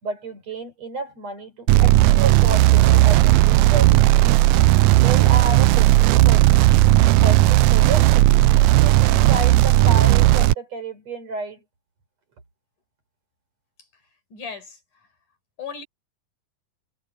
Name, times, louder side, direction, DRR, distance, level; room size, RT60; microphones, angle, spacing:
voice 1, 0.0-4.1 5.0-6.7 7.2-11.6, right 3 dB, 55° right, 6.1 m, -31 dB
sound 1, 1.7-10.5, right 16 dB, 80° right, 1.7 m, -15 dB
voice 2, 14.3-15.1 15.6-15.8, left 6 dB, 80° left, 6.6 m, -36 dB
omnidirectional pair, 3.6 m